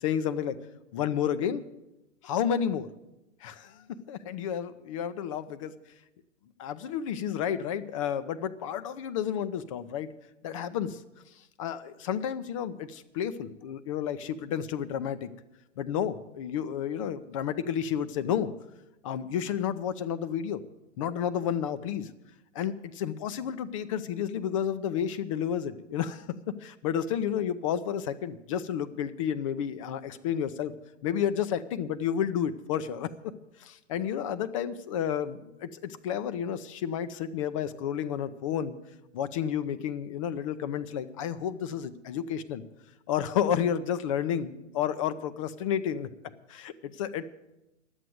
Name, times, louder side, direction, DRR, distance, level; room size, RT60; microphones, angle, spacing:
voice 1, 0.0-0.6 0.9-1.6 2.2-2.9 3.4-3.8 4.1-5.7 6.6-10.1 10.4-11.0 11.6-15.3 15.8-18.5 19.0-20.6 21.0-22.1 22.5-26.3 26.6-30.7 31.0-33.1 33.6-38.8 39.1-42.6 43.1-46.1 46.5-47.3, left 9 dB, 25° left, 13 dB, 0.5 m, -31 dB
12.0 x 7.9 x 9.3 m, 0.95 s
figure-of-eight pair, 120°, 37 cm